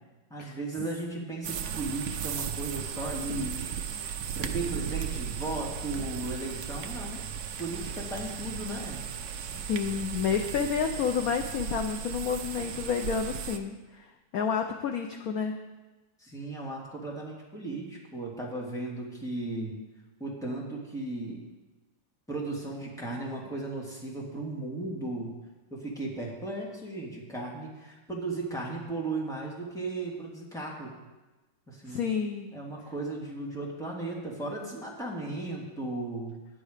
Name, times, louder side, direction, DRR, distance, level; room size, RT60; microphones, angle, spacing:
voice 1, 0.3-3.8 4.1-7.2 7.6-9.0 16.2-19.7 20.2-21.4 22.3-25.3 25.7-30.9 31.7-32.1 32.5-36.3, right 2 dB, ahead, -3 dB, 1.8 m, -36 dB
sound 1, 1.4-13.6, right 8 dB, 65° right, 1.1 m, -36 dB
voice 2, 9.5-15.5 31.9-32.5, left 6 dB, 70° left, 5 dB, 0.9 m, -30 dB
9.9 x 9.5 x 5.0 m, 1.2 s
omnidirectional pair, 2.2 m